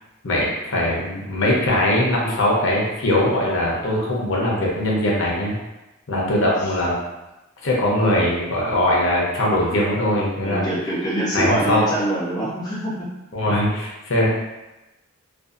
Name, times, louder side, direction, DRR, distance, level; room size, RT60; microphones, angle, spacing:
voice 1, 0.2-5.6 6.1-6.9 7.6-10.7 11.3-11.8 13.3-14.3, left 1 dB, 65° left, -4 dB, 0.6 m, -21 dB
voice 2, 6.1-6.7 10.4-13.1, right 1 dB, 20° left, -7 dB, 0.4 m, -25 dB
2.5 x 2.3 x 2.4 m, 1.0 s
head